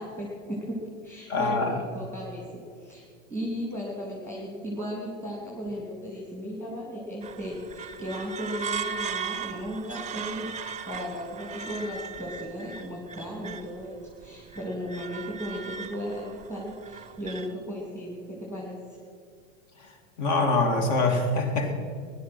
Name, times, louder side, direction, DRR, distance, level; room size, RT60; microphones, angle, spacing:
voice 1, 0.0-3.0 3.3-19.0, equal, 5° left, -3 dB, 2.9 m, -36 dB
voice 2, 1.3-1.8 19.8-19.9 20.2-21.7, left 2 dB, 55° left, 5 dB, 2.5 m, -24 dB
sound 1, 7.2-13.8 14.2-17.5, right 6 dB, 20° right, 0.5 m, -37 dB
15.5 x 11.5 x 6.1 m, 2.3 s
hypercardioid pair, 110°, 38 cm